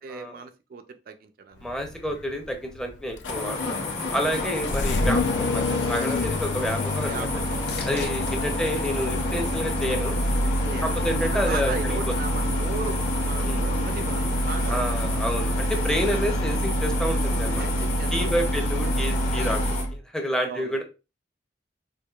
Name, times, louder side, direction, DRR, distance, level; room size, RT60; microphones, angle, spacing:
voice 1, 0.0-1.6 4.2-4.4 7.0-7.6 7.9-8.3 10.6-14.8 16.1-16.2 17.6-18.5 20.2-20.8, right 5 dB, 55° right, 0.3 m, -37 dB
Engine starting, 1.6-20.0, equal, 90° left, 0.5 m, -27 dB
voice 2, 1.6-3.8 4.1-7.3 7.8-10.2 10.8-12.0 13.4-13.6 14.7-17.6 18.1-20.8, equal, 5° left, 0.5 m, -29 dB
sound 1, 3.3-19.8, left 2 dB, 40° left, 1.1 m, -33 dB
sound 2, 5.9-10.2 10.7-11.3 19.1-19.2, left 3 dB, 60° left, 0.9 m, -43 dB
4.6 x 2.5 x 2.3 m
head